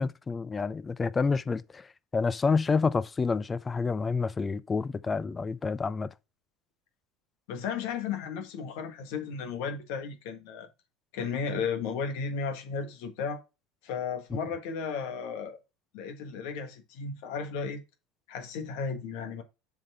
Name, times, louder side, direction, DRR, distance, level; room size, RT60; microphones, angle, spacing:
voice 1, 0.0-1.9 2.1-6.1, left 4 dB, 25° left, 0.6 m, -28 dB
voice 2, 7.5-10.7 11.1-13.4 13.8-15.6 15.9-17.8 18.3-19.4, left 5 dB, 70° left, 1.6 m, -34 dB
7.2 x 3.7 x 5.6 m
hypercardioid pair, 80°, 0 cm